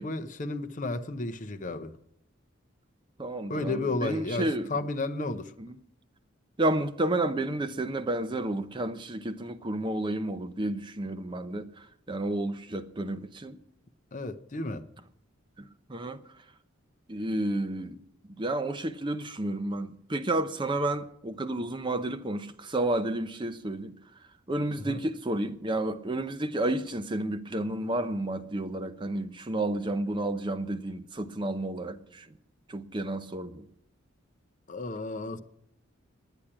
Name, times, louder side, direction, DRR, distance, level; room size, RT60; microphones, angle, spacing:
voice 1, 0.0-1.9 3.5-5.5 14.1-14.8 24.9-25.0 34.7-35.4, left 2 dB, 35° left, 0.7 m, -33 dB
voice 2, 3.2-4.7 5.6-5.8 6.6-13.6 15.6-16.2 17.1-18.0 18.4-23.9 24.5-32.3 32.7-33.6, right 1 dB, 25° right, 0.6 m, -31 dB
10.0 x 10.0 x 8.6 m
head